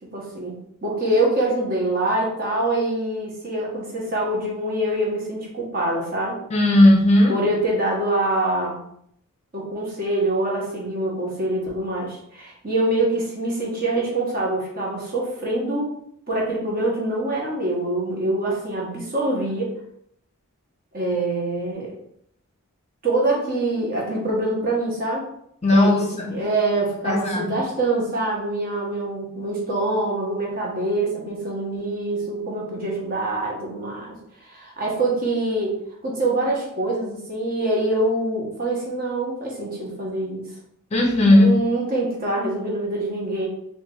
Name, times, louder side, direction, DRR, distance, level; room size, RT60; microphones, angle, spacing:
voice 1, 0.1-6.4 7.3-8.8 9.5-15.9 16.3-19.7 20.9-21.9 23.0-25.3 25.7-34.2 34.4-40.4 41.3-43.5, right 2 dB, 40° right, -3 dB, 1.2 m, -25 dB
voice 2, 6.5-7.3 25.6-26.3 27.0-27.5 40.9-41.6, left 1 dB, 30° left, 0 dB, 0.6 m, -16 dB
3.1 x 2.6 x 3.8 m, 0.70 s
head